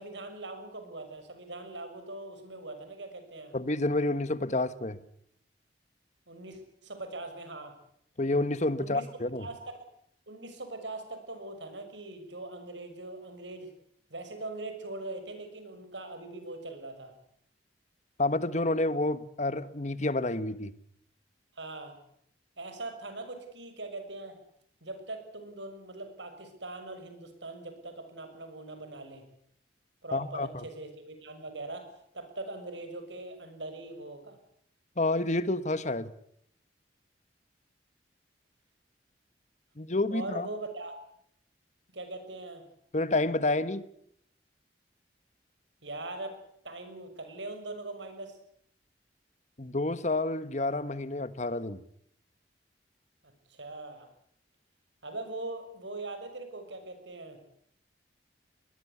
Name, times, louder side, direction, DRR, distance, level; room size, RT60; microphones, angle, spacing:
voice 1, 0.0-3.6 6.3-7.7 8.8-9.1 9.4-9.8 10.3-13.7 14.1-17.1 21.5-22.0 22.6-24.4 24.8-29.3 30.0-31.9 32.1-34.4 40.1-40.9 41.9-42.6 45.8-48.4 53.5-54.1 55.0-57.4, right 2 dB, 80° right, 6.7 m, -41 dB
voice 2, 3.5-5.0 8.2-9.5 18.2-20.7 30.1-30.6 35.0-36.1 39.8-40.5 42.9-43.8 49.6-51.8, left 2 dB, 40° left, 1.3 m, -29 dB
22.5 x 21.0 x 8.4 m
head